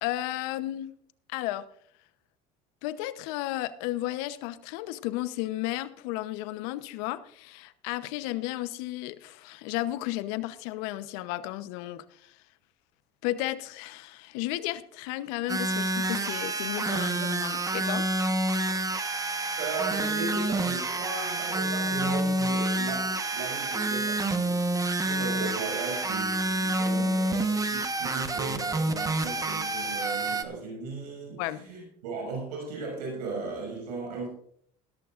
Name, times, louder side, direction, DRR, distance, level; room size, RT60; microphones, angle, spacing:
voice 1, 0.0-0.9 1.3-1.7 2.8-12.4 13.2-18.1 24.6-24.9 31.4-31.6, left 15 dB, 75° left, 1.0 m, -33 dB
sound 1, 15.5-30.4, right 2 dB, 15° right, 1.2 m, -28 dB
voice 2, 19.6-24.7 25.0-34.3, right 4 dB, 90° right, 6.3 m, -37 dB
18.0 x 13.0 x 2.5 m
supercardioid pair, 90°, 20 cm